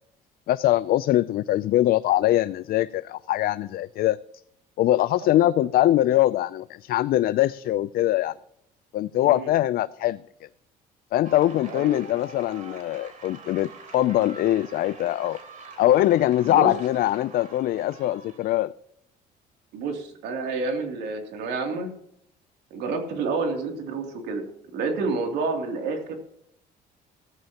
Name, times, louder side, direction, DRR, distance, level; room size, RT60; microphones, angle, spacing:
voice 1, 0.5-4.2 4.8-8.3 8.9-10.2 11.1-15.4 15.8-18.7, left 14 dB, 65° left, 0.4 m, -22 dB
sound 1, 11.2-18.5, right 3 dB, 50° right, 3.7 m, -45 dB
voice 2, 11.7-12.0 16.4-16.7 19.7-21.9 22.7-26.2, right 3 dB, 85° right, 2.9 m, -29 dB
16.0 x 14.0 x 2.9 m
cardioid pair, 110°, 17 cm